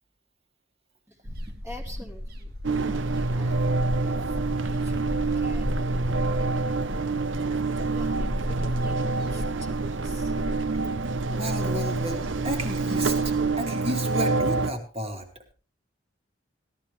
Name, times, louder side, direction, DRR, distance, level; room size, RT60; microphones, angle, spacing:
voice 1, 1.1-4.4 4.6-6.7 7.4-10.3, left 1 dB, 15° right, 0 dB, 2.2 m, -46 dB
sound 1, 1.2-13.5, equal, 55° right, 1.7 m, -35 dB
sound 2, 2.6-14.7, right 3 dB, 85° right, 0.8 m, -27 dB
voice 2, 11.3-15.3, right 1 dB, 30° right, 3 dB, 2.4 m, -32 dB
17.0 x 12.5 x 3.2 m, 0.34 s
head